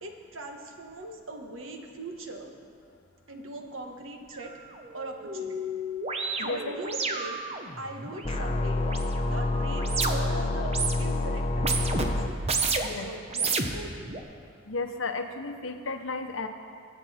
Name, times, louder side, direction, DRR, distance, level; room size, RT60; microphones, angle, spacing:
voice 1, 0.0-2.5 3.3-4.5 4.9-5.6 6.4-7.4 7.8-8.8 9.2-10.7 11.0-11.8 12.1-12.4 12.6-14.1, right 1 dB, 75° right, 3 dB, 1.4 m, -40 dB
sound 1, 4.3-4.4 4.8-10.4 10.7-11.2 11.5-13.0 13.3-14.2, right 3 dB, 30° right, 0.8 m, -32 dB
voice 2, 6.4-6.7 12.8-13.1 14.7-16.5, left 3 dB, 70° left, 6 dB, 1.0 m, -33 dB
sound 2, 8.2-12.3, left 2 dB, 30° left, 0.7 m, -28 dB
22.5 x 8.1 x 4.3 m, 2.3 s
head